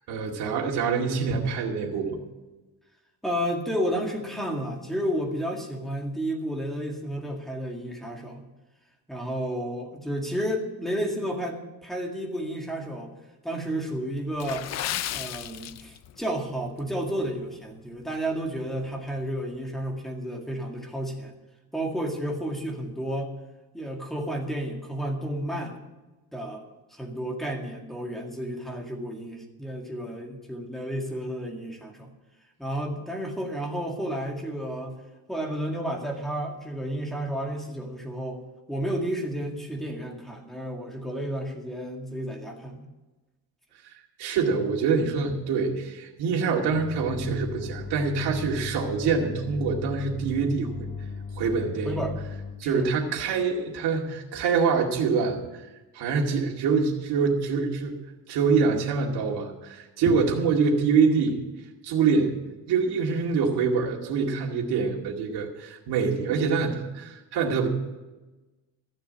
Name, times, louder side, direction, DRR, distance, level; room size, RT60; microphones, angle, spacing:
voice 1, 0.1-2.2 44.2-50.7 51.4-52.0 52.6-55.6 55.9-57.9 58.3-61.4 61.8-62.3 62.7-67.7, right 5 dB, 80° right, -1 dB, 2.3 m, -25 dB
voice 2, 3.2-8.4 9.1-13.1 13.4-14.7 15.1-21.3 21.7-23.3 23.7-25.8 26.3-26.6 26.9-32.1 32.6-34.9 35.3-38.4 38.7-42.8 51.8-52.2 52.6-52.9, equal, ahead, 1 dB, 2.0 m, -31 dB
Water / Splash splatter, 14.3-16.3 16.6-16.8 17.4-17.6 18.0-18.1, left 12 dB, 45° left, 0.4 m, -34 dB
sound 1, 46.7-52.5, left 4 dB, 20° left, 1.8 m, -37 dB
14.5 x 7.0 x 8.5 m, 1.1 s
cardioid pair, 160°, 39 cm